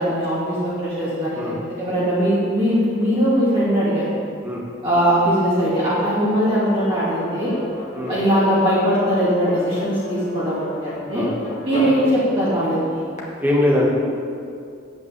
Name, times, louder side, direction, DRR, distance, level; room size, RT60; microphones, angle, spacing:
voice 1, 0.0-1.5 1.8-4.1 4.8-7.5 8.1-11.2 11.6-13.1, equal, 25° right, -11 dB, 2.8 m, -20 dB
sound 1, 6.7-13.2, left 1 dB, 35° left, 1.8 m, -32 dB
voice 2, 13.4-13.9, left 1 dB, 10° right, -4 dB, 1.8 m, -22 dB
9.6 x 8.4 x 7.0 m, 2.4 s
head